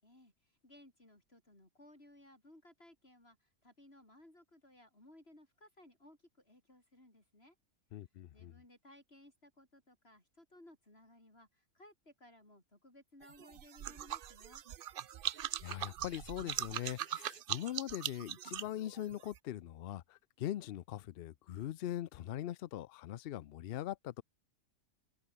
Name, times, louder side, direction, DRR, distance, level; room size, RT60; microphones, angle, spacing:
voice 1, 0.0-7.5 8.3-14.6, left 1 dB, 40° left, 6.6 m, -61 dB
voice 2, 7.9-8.5 15.6-24.2, left 12 dB, 90° left, 0.5 m, -41 dB
sound 1, 13.2-19.4, right 10 dB, 70° right, 0.5 m, -41 dB
open air
omnidirectional pair, 1.6 m